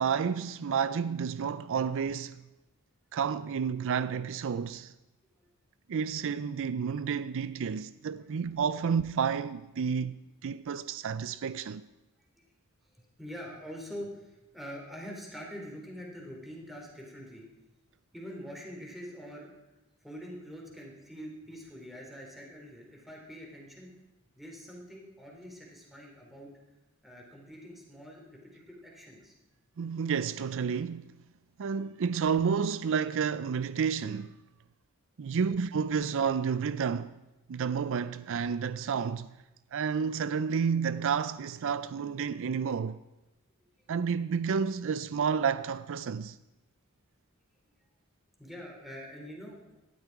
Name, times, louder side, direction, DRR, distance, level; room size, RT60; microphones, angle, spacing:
voice 1, 0.0-2.4 3.1-4.9 5.9-11.9 29.8-31.2 31.6-34.4 35.2-37.1 37.5-39.3 39.7-43.0 43.9-46.4, right 6 dB, 65° right, 0.4 m, -30 dB
voice 2, 13.0-17.5 18.1-19.5 20.0-23.9 24.4-26.5 27.0-29.3 48.4-49.6, equal, ahead, 3.5 m, -45 dB
18.0 x 12.0 x 4.8 m
head